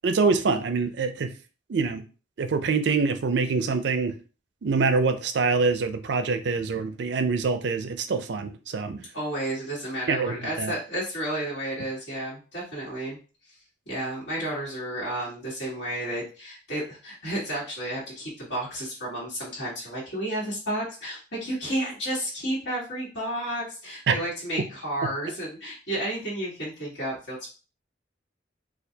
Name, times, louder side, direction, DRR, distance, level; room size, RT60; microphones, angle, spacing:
voice 1, 0.0-1.3 1.7-2.0 2.4-4.2 4.6-9.0 10.1-10.8 24.1-24.2 25.0-25.1, right 4 dB, 65° right, 9 dB, 0.4 m, -25 dB
voice 2, 9.1-13.2 13.9-27.5, right 1 dB, 65° left, -7 dB, 1.6 m, -32 dB
4.3 x 2.4 x 2.7 m, 0.35 s
head